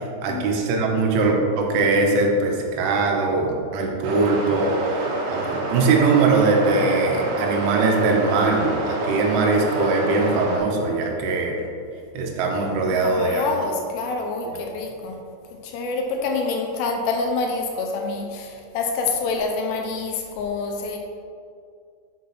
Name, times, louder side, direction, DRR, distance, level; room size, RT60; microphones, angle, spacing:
voice 1, 0.2-11.6 12.1-13.6, right 3 dB, 90° right, 0 dB, 3.3 m, -21 dB
sound 1, 4.0-10.6, right 2 dB, 70° right, 2.7 m, -27 dB
voice 2, 13.0-15.2 15.6-21.0, left 3 dB, 80° left, 2 dB, 2.5 m, -27 dB
7.4 x 3.9 x 5.9 m, 2.3 s
omnidirectional pair, 5.4 m